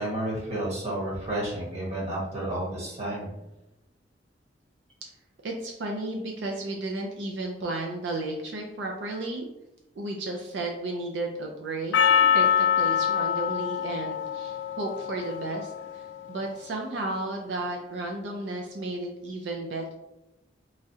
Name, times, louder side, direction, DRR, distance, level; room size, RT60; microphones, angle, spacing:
voice 1, 0.0-3.3, right 1 dB, 35° right, -5 dB, 1.2 m, -31 dB
voice 2, 5.4-9.4 10.0-12.0 12.3-19.9, right 2 dB, 75° right, 1 dB, 0.4 m, -33 dB
Percussion, 11.9-16.4, left 8 dB, 85° left, 0.3 m, -25 dB
3.6 x 3.1 x 2.7 m, 0.96 s
head